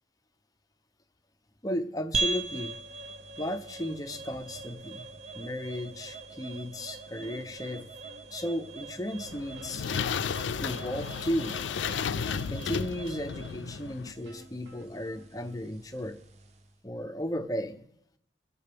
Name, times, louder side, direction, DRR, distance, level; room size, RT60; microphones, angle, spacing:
voice 1, 1.6-2.7 3.4-5.1 5.3-7.8 8.3-9.9 10.6-11.6 12.5-16.2 16.8-17.8, equal, 20° left, 7 dB, 0.6 m, -35 dB
sound 1, 2.1-16.7, right 3 dB, 35° right, 0.5 m, -40 dB
sound 2, 7.2-8.6 9.6-11.3 11.9-13.2 13.7-13.8 14.2-15.6 16.0-16.1, left 2 dB, 70° right, 1.1 m, -53 dB
sound 3, 9.2-14.1, left 7 dB, 70° left, 0.4 m, -33 dB
22.5 x 7.5 x 3.4 m, 0.79 s
head